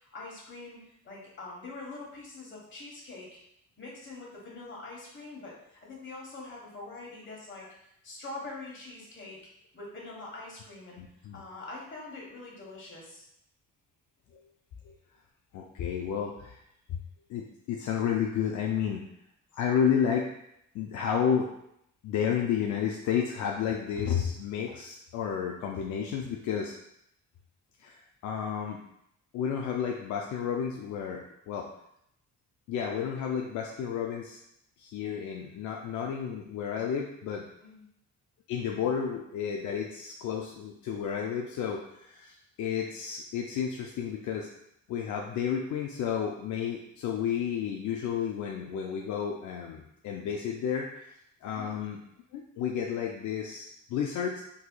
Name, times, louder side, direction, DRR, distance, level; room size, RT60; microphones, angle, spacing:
voice 1, 0.0-3.4 3.8-7.7 8.0-9.4 9.7-11.0 11.3-13.3 37.6-37.8 51.4-51.8, left 2 dB, 40° left, -3 dB, 1.3 m, -44 dB
voice 2, 11.0-11.4 14.8-14.9 15.5-16.6 17.3-19.0 19.5-20.3 20.7-21.5 22.0-26.7 27.8-28.8 29.3-31.7 32.7-34.4 34.8-37.4 38.5-44.5 44.9-51.1 51.4-52.0 52.3-54.4, left 7 dB, 75° left, 0 dB, 0.5 m, -31 dB
4.0 x 2.8 x 2.2 m, 0.76 s
cardioid pair, 90°, 30 cm